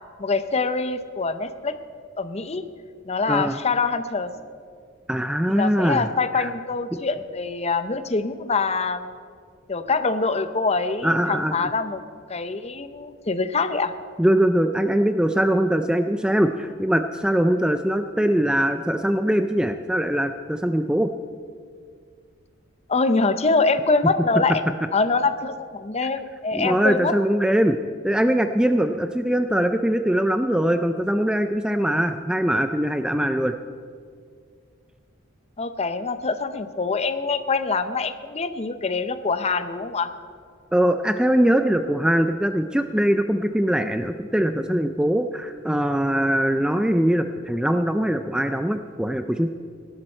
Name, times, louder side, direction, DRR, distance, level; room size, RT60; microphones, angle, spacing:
voice 1, 0.2-1.7 2.2-2.6 3.0-4.3 5.5-9.1 9.7-12.0 12.3-13.9 22.9-24.6 24.9-27.2 35.6-40.1, left 4 dB, 30° left, 11 dB, 0.6 m, -24 dB
voice 2, 5.1-6.1 6.3-6.5 11.0-11.7 14.2-21.1 26.0-26.1 26.5-27.8 28.0-33.5 40.7-49.5, right 1 dB, 5° right, 7 dB, 0.3 m, -22 dB
18.0 x 12.0 x 4.4 m, 2.1 s
head